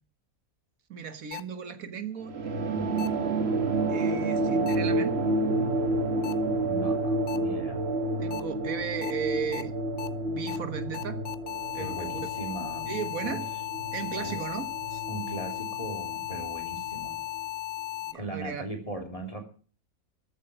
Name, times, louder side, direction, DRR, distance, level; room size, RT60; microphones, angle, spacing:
voice 1, 0.9-3.0 3.9-5.2 8.2-9.7 10.3-11.2 11.7-12.2 12.9-13.5 13.9-15.0 18.1-18.7, right 6 dB, 70° right, 1.6 m, -36 dB
sound 1, 1.3-1.4 3.0-3.1 4.7-4.8 6.2-6.3 7.3-7.4 8.3-8.4 9.0-9.1 9.5-9.6 10.0-10.1 10.5-10.6 10.9-18.1, left 14 dB, 50° left, 0.9 m, -36 dB
sound 2, 2.3-17.1, right 2 dB, 45° right, 1.6 m, -30 dB
voice 2, 2.7-3.3 6.6-7.8 11.8-12.9 13.2-13.4 14.2-14.4 15.1-17.2 18.1-19.4, right 2 dB, 25° left, 3.3 m, -39 dB
14.0 x 8.4 x 8.9 m
omnidirectional pair, 1.5 m